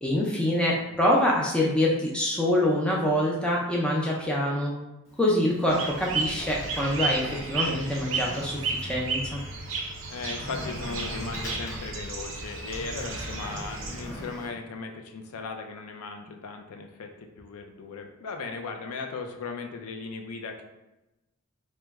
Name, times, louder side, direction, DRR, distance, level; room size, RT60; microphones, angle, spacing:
voice 1, 0.0-4.7 5.2-9.4, left 1 dB, 5° left, -4 dB, 0.4 m, -25 dB
Sliding door, 5.0-14.5, equal, 60° left, 0.8 m, -41 dB
sound 1, 5.7-14.0, right 4 dB, 60° right, 0.6 m, -33 dB
voice 2, 10.1-20.6, left 4 dB, 90° left, 4 dB, 0.4 m, -37 dB
3.0 x 2.2 x 3.4 m, 0.97 s
head